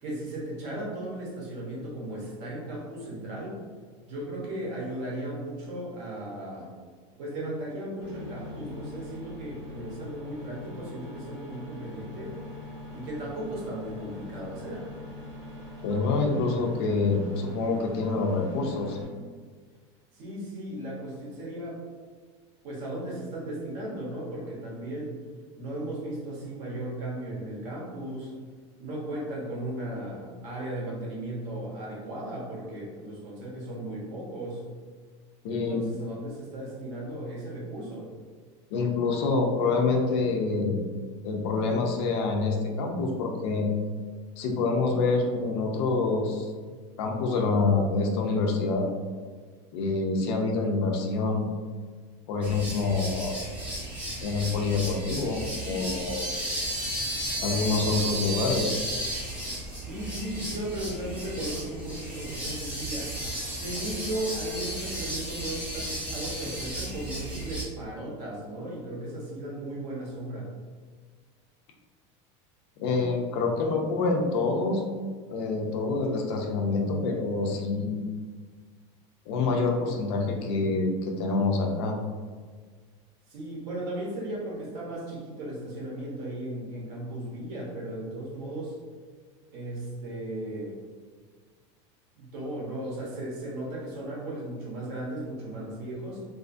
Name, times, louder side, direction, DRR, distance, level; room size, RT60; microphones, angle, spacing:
voice 1, 0.0-3.6 4.1-6.7 7.2-12.4 12.9-14.9 20.1-21.8 22.6-25.2 25.6-28.3 28.8-34.6 35.5-38.1 59.8-63.2 63.5-70.5 83.3-88.7 89.5-90.8 92.2-96.2, right 1 dB, 45° right, -4 dB, 0.8 m, -36 dB
sound 1, 8.0-19.0, left 2 dB, 80° right, 1.1 m, -43 dB
voice 2, 15.8-19.0 35.4-35.8 38.7-40.8 41.2-43.7 44.4-46.5 47.0-48.8 49.7-51.5 52.3-53.3 54.2-56.3 57.4-58.8 72.8-74.8 75.3-78.1 79.3-82.0, left 3 dB, 60° left, 2 dB, 0.4 m, -26 dB
sound 2, 52.4-67.6, right 1 dB, 10° right, 0.4 m, -34 dB
2.5 x 2.4 x 2.4 m, 1.5 s
supercardioid pair, 175°, 15 cm